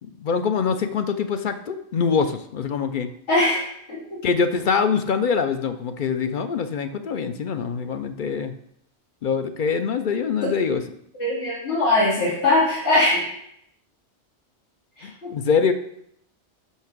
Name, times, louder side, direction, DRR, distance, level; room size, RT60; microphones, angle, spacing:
voice 1, 0.0-3.1 4.2-8.5 9.2-10.8 15.0-15.7, left 6 dB, 55° left, 9 dB, 0.6 m, -24 dB
voice 2, 3.3-4.0 11.1-13.3 15.0-15.3, left 2 dB, 85° left, -9 dB, 2.9 m, -21 dB
5.7 x 5.7 x 6.0 m, 0.72 s
omnidirectional pair, 1.1 m